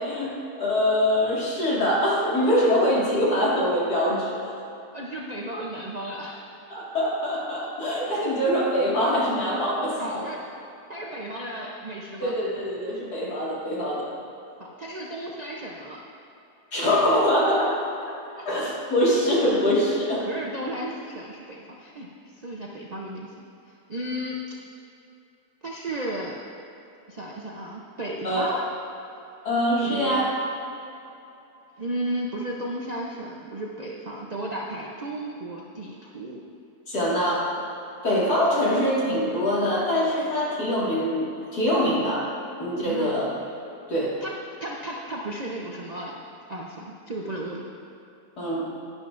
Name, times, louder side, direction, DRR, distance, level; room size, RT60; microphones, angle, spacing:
voice 1, 0.0-4.5 6.7-9.9 12.2-14.0 16.7-18.1 18.5-20.2 28.2-28.5 29.4-30.3 36.9-37.5 38.0-42.3 42.6-43.3 43.9-44.1 48.4-48.7, equal, 70° left, -7 dB, 2.7 m, -24 dB
voice 2, 4.9-6.5 10.0-10.4 10.9-12.3 14.6-16.0 18.4-18.5 20.2-23.3 23.7-24.4 25.6-26.4 27.1-28.6 29.8-30.2 31.8-36.4 42.9-43.2 44.2-46.2 46.5-47.6, right 1 dB, 55° right, -2 dB, 0.4 m, -34 dB
11.5 x 10.5 x 2.6 m, 2.9 s
omnidirectional pair, 1.8 m